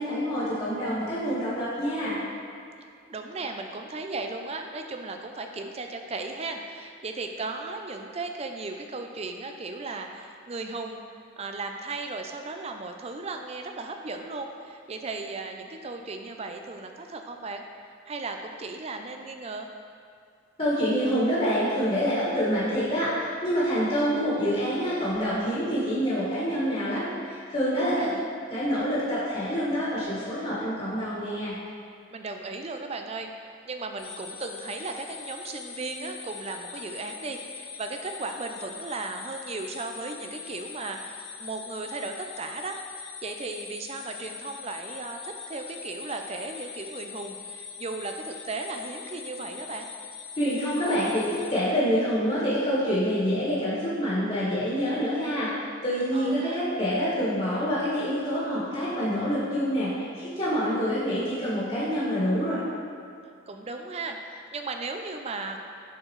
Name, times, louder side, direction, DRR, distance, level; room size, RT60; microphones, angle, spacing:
voice 1, 0.0-2.2 20.6-28.1 28.5-31.5 50.4-55.5 55.8-62.6, equal, 30° left, -10 dB, 1.8 m, -26 dB
voice 2, 3.1-11.0 11.4-17.6 18.1-19.7 27.8-28.3 32.1-42.8 43.2-49.9 56.1-56.6 63.5-65.6, right 3 dB, 30° right, 4 dB, 0.4 m, -36 dB
sound 1, 34.0-51.5, left 6 dB, 80° left, 1.2 m, -42 dB
11.0 x 4.4 x 3.1 m, 2.3 s
head